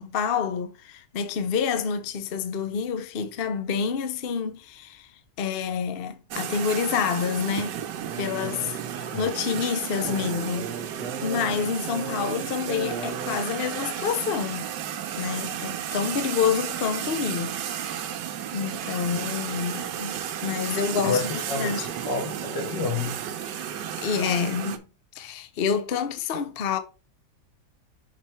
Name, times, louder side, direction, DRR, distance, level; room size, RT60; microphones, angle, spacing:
voice 1, 0.0-5.1 5.4-7.8 8.2-10.8 11.2-14.7 15.2-17.6 18.5-20.2 20.4-21.2 21.6-21.9 24.0-24.8 25.1-26.8, left 6 dB, 55° left, 0.6 m, -28 dB
sound 1, 6.3-24.8, right 9 dB, 85° right, 1.4 m, -33 dB
sound 2, 8.0-13.4, right 6 dB, 55° right, 1.0 m, -38 dB
voice 2, 21.0-23.8, left 4 dB, 85° left, 2.2 m, -30 dB
6.0 x 4.2 x 4.3 m
omnidirectional pair, 1.9 m